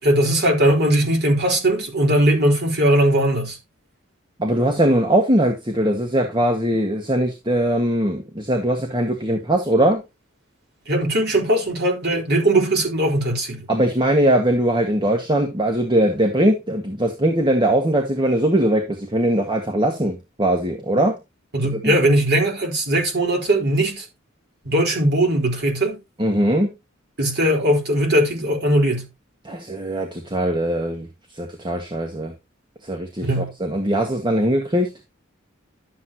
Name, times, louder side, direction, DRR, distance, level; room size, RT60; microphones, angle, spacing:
voice 1, 0.0-3.6 10.9-13.6 21.5-24.1 24.6-26.0 27.2-29.1 33.2-33.5, right 1 dB, 55° right, 4.2 m, -19 dB
voice 2, 4.4-10.0 13.7-21.2 21.7-21.9 26.2-26.7 29.4-31.1 31.3-32.3 32.8-34.9, right 1 dB, 25° right, 1.7 m, -20 dB
12.0 x 7.9 x 2.9 m
head